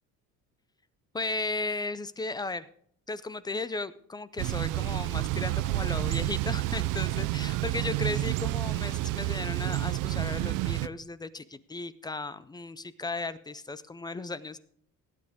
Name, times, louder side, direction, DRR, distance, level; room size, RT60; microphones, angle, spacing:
voice 1, 1.1-2.7 3.1-14.6, left 3 dB, 15° left, 15 dB, 0.4 m, -35 dB
Thunder / Bicycle, 4.4-10.9, right 17 dB, 65° right, 0.5 m, -29 dB
18.0 x 9.3 x 3.5 m, 0.64 s
cardioid pair, 150°, 33 cm